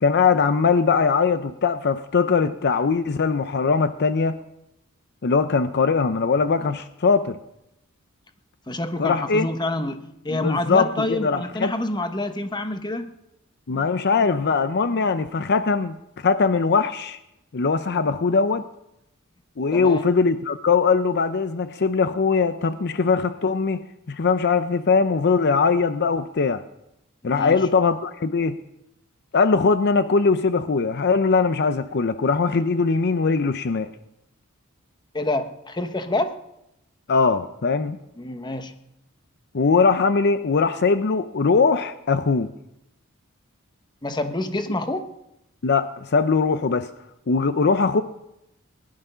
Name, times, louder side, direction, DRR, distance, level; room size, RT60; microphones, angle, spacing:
voice 1, 0.0-4.4 5.2-7.4 9.0-9.5 10.3-11.7 13.7-17.2 17.5-18.7 19.6-23.8 24.1-26.6 27.2-28.6 29.3-33.9 37.1-38.0 39.5-42.5 45.6-46.9 47.3-48.0, left 4 dB, 50° left, 11 dB, 0.6 m, -21 dB
voice 2, 8.7-13.1 19.7-20.0 27.2-27.6 35.1-36.3 38.2-38.7 44.0-45.1, left 2 dB, 20° left, 8 dB, 1.0 m, -27 dB
19.0 x 11.5 x 5.6 m, 0.86 s
head